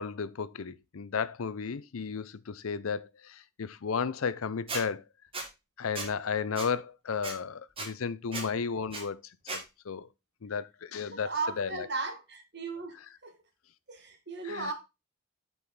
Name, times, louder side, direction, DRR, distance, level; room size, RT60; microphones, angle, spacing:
voice 1, 0.0-5.0 5.8-9.2 9.5-10.1 10.4-11.9 14.4-14.7, left 6 dB, 80° left, 0.6 m, -34 dB
Squeak, 4.7-4.8 5.3-5.5 5.9-6.1 6.6-6.7 7.2-7.3 7.8-7.9 8.3-8.5 8.9-9.0 9.5-9.6, right 3 dB, 25° right, 1.9 m, -35 dB
voice 2, 11.1-13.0 13.2-13.3 13.9-14.7, right 3 dB, 55° right, 2.0 m, -36 dB
8.1 x 5.5 x 4.2 m
head